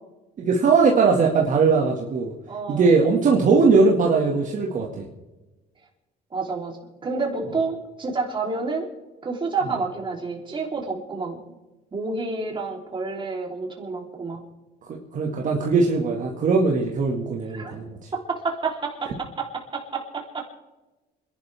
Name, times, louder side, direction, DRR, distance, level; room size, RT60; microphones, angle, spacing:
voice 1, 0.4-2.3 2.7-5.0 14.9-17.9, right 4 dB, 50° right, -1 dB, 2.1 m, -20 dB
voice 2, 2.5-2.9 6.3-6.8 7.0-8.9 9.2-11.4 11.9-14.4 17.5-17.7 18.1-20.5, right 4 dB, 30° right, 0 dB, 3.7 m, -29 dB
27.0 x 11.5 x 3.6 m, 1.1 s
cardioid pair, 110°, 17 cm